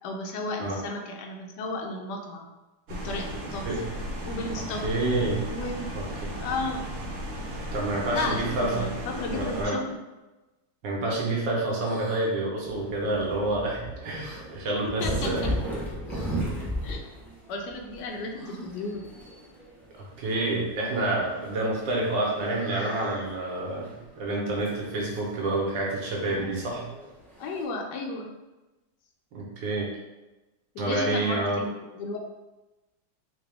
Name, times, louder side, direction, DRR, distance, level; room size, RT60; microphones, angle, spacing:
voice 1, 0.0-2.5 2.9-3.7 4.2-4.9 5.5-6.8 8.1-10.0 14.9-15.5 16.8-17.0 17.5-19.0 27.4-28.3 30.7-32.2, left 2 dB, 75° left, 2 dB, 1.1 m, -34 dB
sound 1, 2.9-9.7, equal, 65° right, 0.9 m, -35 dB
voice 2, 4.8-5.4 5.9-6.3 7.7-8.9 9.3-9.8 10.8-15.5 20.0-23.9 24.2-26.8 29.3-29.9 30.8-31.6, right 2 dB, 80° right, -3 dB, 1.5 m, -28 dB
sound 2, 11.8-12.3 14.2-14.4 16.1-16.4 18.3-18.9, equal, 50° left, 1.6 m, -46 dB
sound 3, 12.6-27.6, equal, ahead, 0.3 m, -37 dB
3.9 x 2.2 x 3.4 m, 1.1 s
omnidirectional pair, 1.9 m